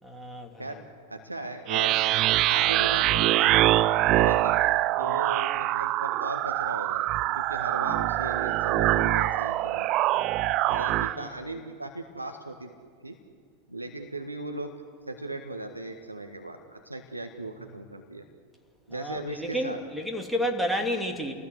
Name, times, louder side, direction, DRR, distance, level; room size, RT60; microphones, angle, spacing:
voice 1, 0.0-0.8 5.0-5.2 11.1-11.3 18.9-21.3, equal, ahead, 2 dB, 3.0 m, -31 dB
voice 2, 0.6-2.0 2.5-3.6 4.1-4.6 5.0-9.9 10.6-12.7 13.0-13.1 13.7-14.7 15.0-18.2 18.9-19.8, right 2 dB, 85° right, 5 dB, 1.7 m, -37 dB
sound 1, 1.7-11.1, right 15 dB, 40° right, 0.6 m, -24 dB
29.0 x 19.5 x 8.2 m, 2.1 s
figure-of-eight pair, 90°, 0 cm